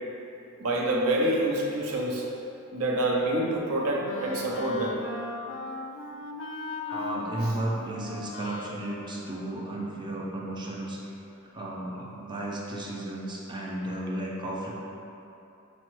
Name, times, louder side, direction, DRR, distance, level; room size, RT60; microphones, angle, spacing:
voice 1, 0.6-2.3 2.7-5.0, right 1 dB, 80° right, -1 dB, 0.6 m, -27 dB
Wind instrument woodwind instrument, 3.5-10.2, left 3 dB, 60° left, 0.4 m, -39 dB
voice 2, 6.9-11.0 11.5-14.8, right 1 dB, 20° right, -3 dB, 0.5 m, -34 dB
6.2 x 2.1 x 3.0 m, 2.8 s
head